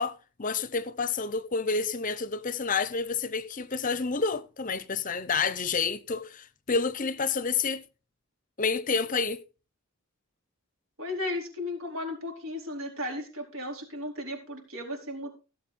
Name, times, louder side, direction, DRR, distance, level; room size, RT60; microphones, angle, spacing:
voice 1, 0.0-7.8 8.6-9.4, left 5 dB, 35° left, 0.7 m, -29 dB
voice 2, 11.0-15.3, left 1 dB, 65° right, 4.4 m, -35 dB
16.5 x 7.8 x 4.2 m
head